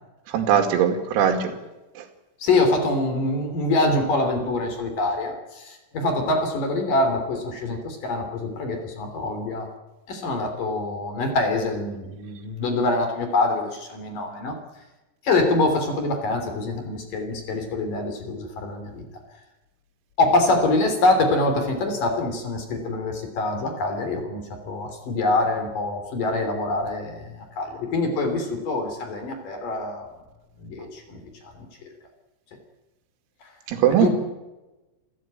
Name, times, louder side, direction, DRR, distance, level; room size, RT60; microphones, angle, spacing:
voice 1, 0.3-1.5 2.0-2.1 33.7-34.1, right 8 dB, 90° right, 6 dB, 5.1 m, -20 dB
voice 2, 2.4-9.7 10.1-14.6 15.2-19.0 20.2-30.1 30.6-31.9 33.4-33.5 34.0-34.1, left 2 dB, 45° left, 6 dB, 4.3 m, -25 dB
28.5 x 14.0 x 9.0 m, 1.1 s
omnidirectional pair, 6.0 m